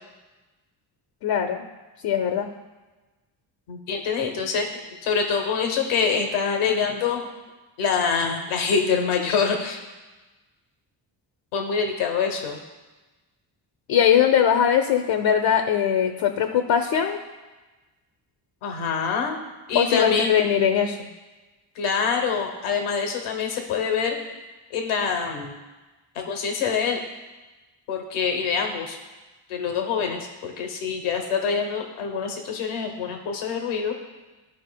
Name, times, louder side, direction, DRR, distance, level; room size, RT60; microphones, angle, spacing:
voice 1, 1.2-1.6 2.0-2.5 13.9-17.2 19.7-21.1, left 8 dB, 65° left, 5 dB, 0.7 m, -21 dB
voice 2, 3.7-7.2 7.8-9.8 11.5-12.6 18.6-19.4 19.7-20.3 21.7-24.2 24.7-25.6 26.1-27.0 27.9-29.0 29.5-33.9, left 6 dB, 90° left, 4 dB, 1.0 m, -25 dB
12.0 x 4.4 x 2.2 m, 1.2 s
supercardioid pair, 60°, 48 cm